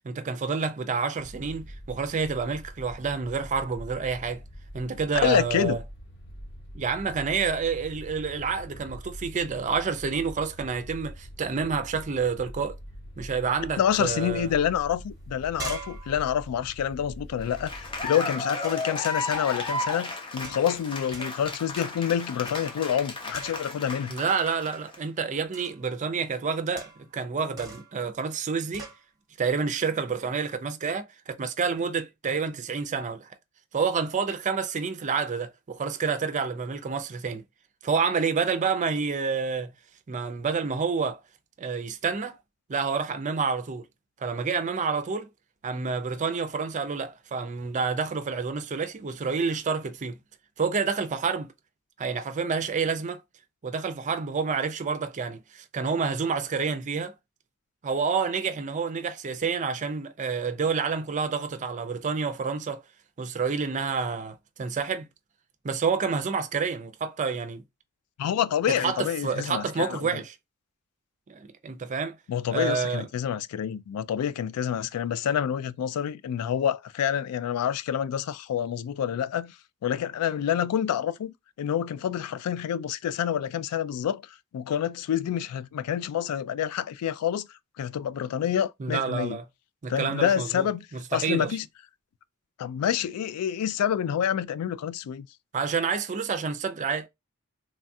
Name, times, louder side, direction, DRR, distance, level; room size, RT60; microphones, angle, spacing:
voice 1, 0.0-4.4 4.7-5.8 6.7-12.8 13.2-14.5 24.1-28.9 29.4-31.1 31.4-33.3 33.7-37.4 37.8-39.7 40.1-41.2 41.6-42.3 42.7-43.8 44.2-45.3 45.6-50.2 50.6-51.5 52.0-53.2 53.6-57.1 57.8-62.8 63.2-65.1 65.6-67.6 68.8-70.4 71.3-72.2 72.5-73.1 88.8-89.4 89.8-90.7 90.9-91.6 95.5-97.1, right 5 dB, 35° right, 0.4 m, -28 dB
sound 1, 1.2-18.1, equal, 50° left, 0.9 m, -44 dB
voice 2, 5.2-5.8 13.8-24.2 68.2-70.1 72.3-79.5 79.8-84.2 84.5-87.5 87.8-89.4 89.9-90.9 91.1-91.7 92.6-95.3, left 9 dB, 85° left, 0.3 m, -27 dB
sound 2, 14.8-14.9 15.2-17.9 18.6-19.0 19.7-20.0 20.4-21.5 21.8-22.1 22.5-23.0 23.3-23.9 25.5-25.9 26.8-27.2 27.6-28.0 28.7-29.0, right 3 dB, 15° right, 0.9 m, -43 dB
Cheering / Applause, 17.4-25.0, left 2 dB, 25° left, 0.5 m, -34 dB
3.2 x 2.3 x 2.6 m
head